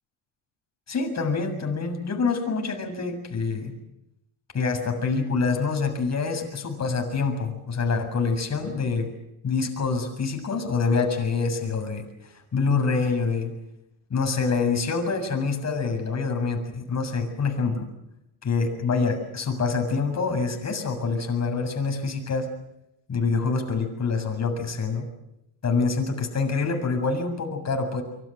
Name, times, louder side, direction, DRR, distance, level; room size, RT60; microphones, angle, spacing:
voice 1, 0.9-3.7 4.5-9.1 9.4-12.1 12.5-13.5 14.1-17.9 18.4-22.5 23.1-25.1 25.6-28.0, left 4 dB, 35° left, 4 dB, 7.2 m, -26 dB
25.5 x 23.5 x 8.1 m, 0.84 s
cardioid pair, 115°, 46 cm